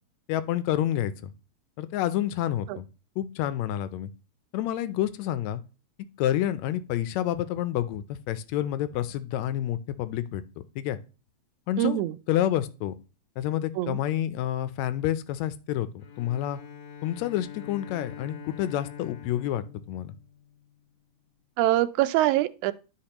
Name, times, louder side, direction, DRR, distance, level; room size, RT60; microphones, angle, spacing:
voice 1, 0.3-1.3 1.8-2.9 3.2-4.1 4.5-5.6 6.2-10.4 10.8-11.0 11.7-12.0 12.3-12.9 13.4-16.6 17.0-20.1, left 12 dB, 80° left, 1.8 m, -29 dB
voice 2, 11.8-12.1 13.8-14.0 21.6-22.7, right 15 dB, 90° right, 2.0 m, -24 dB
Bowed string instrument, 16.0-20.8, left 8 dB, 60° left, 1.3 m, -45 dB
12.0 x 5.1 x 2.9 m
omnidirectional pair, 3.3 m